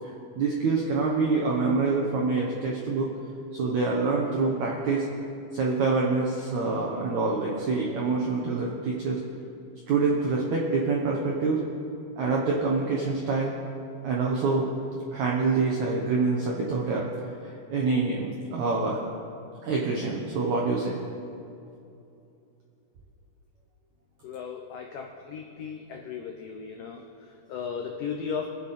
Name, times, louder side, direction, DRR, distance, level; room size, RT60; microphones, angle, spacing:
voice 1, 0.3-3.1 3.5-5.1 5.5-9.2 9.9-11.6 12.2-13.5 14.0-14.7 15.1-17.1 17.4-19.0 19.6-21.0, right 4 dB, 80° right, -2 dB, 1.6 m, -26 dB
voice 2, 24.2-28.5, left 6 dB, 90° left, 2 dB, 1.9 m, -36 dB
22.5 x 8.2 x 4.2 m, 2.7 s
omnidirectional pair, 5.0 m